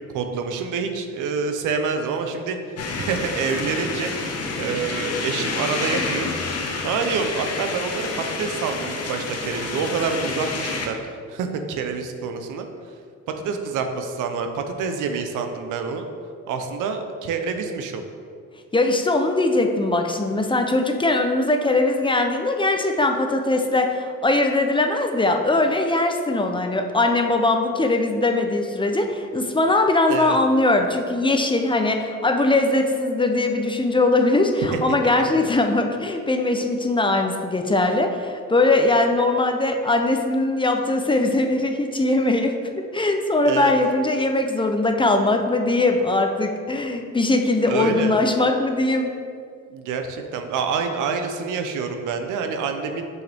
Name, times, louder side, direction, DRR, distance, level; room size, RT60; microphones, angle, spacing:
voice 1, 0.1-2.6 2.9-4.1 4.6-6.3 6.8-11.0 11.3-12.7 13.4-16.0 16.5-18.0 30.1-30.4 34.7-34.8 35.2-35.4 43.5-43.7 47.7-48.1 49.7-53.1, right 5 dB, 85° right, 6 dB, 0.7 m, -27 dB
sound 1, 2.8-10.9, left 4 dB, 55° left, 0.9 m, -29 dB
voice 2, 18.7-49.1, left 2 dB, 15° left, 4 dB, 0.6 m, -21 dB
6.4 x 5.6 x 3.4 m, 2.2 s
cardioid pair, 90°, 30 cm